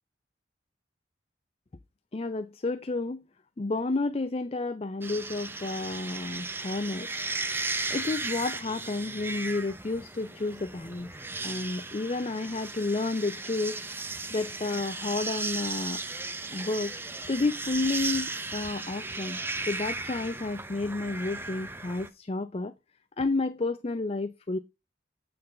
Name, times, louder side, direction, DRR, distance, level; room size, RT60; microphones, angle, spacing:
voice 1, 2.1-3.3 3.6-7.1 7.9-11.1 11.4-13.8 14.3-16.0 16.5-16.9 17.3-19.4 19.7-22.7 23.2-24.6, left 3 dB, 30° left, 0.4 m, -31 dB
sound 1, 5.0-22.1, right 3 dB, 10° right, 0.7 m, -36 dB
8.8 x 3.9 x 5.4 m
head